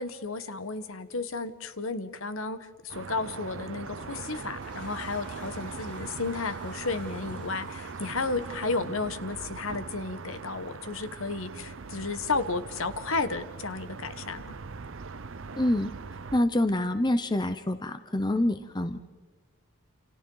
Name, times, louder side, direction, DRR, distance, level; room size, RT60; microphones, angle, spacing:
voice 1, 0.0-14.6, left 3 dB, 65° left, 11 dB, 1.1 m, -33 dB
sound 1, 2.9-16.4, right 4 dB, 60° right, 0.6 m, -41 dB
Toilet flush, 3.6-9.9, left 3 dB, 50° left, 7.1 m, -53 dB
voice 2, 15.6-15.9 16.3-19.0, left 1 dB, 20° left, 9 dB, 0.6 m, -26 dB
28.5 x 28.5 x 3.9 m, 1.3 s
head